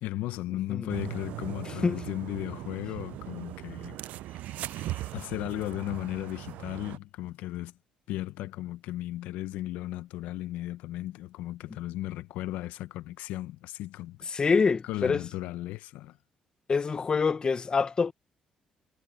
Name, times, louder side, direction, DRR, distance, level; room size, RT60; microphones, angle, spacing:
voice 1, 0.0-4.0 5.1-7.7 8.1-14.4 14.8-16.2, left 15 dB, 85° left, 0.7 m, -35 dB
sound 1, 0.9-7.0, right 15 dB, 80° right, 0.3 m, -39 dB
voice 2, 1.7-2.0 14.3-15.2 16.7-18.1, left 5 dB, 35° left, 1.0 m, -26 dB
sound 2, 2.6-7.5, left 8 dB, 55° left, 5.8 m, -63 dB
cardioid pair, 80°, 3 cm